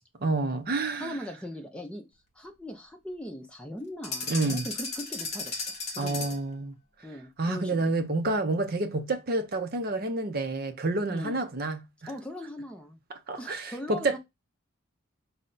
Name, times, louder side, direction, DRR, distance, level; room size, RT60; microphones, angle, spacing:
voice 1, 0.2-1.2 4.3-4.7 6.0-6.7 7.4-12.1 13.1-14.2, right 2 dB, 45° right, 0.5 m, -29 dB
voice 2, 1.0-2.0 2.4-6.3 7.0-7.8 11.1-11.3 12.1-13.0 13.4-14.2, left 1 dB, 5° left, 0.5 m, -39 dB
sound 1, 4.0-6.5, left 3 dB, 30° left, 0.8 m, -35 dB
5.5 x 2.1 x 3.8 m
head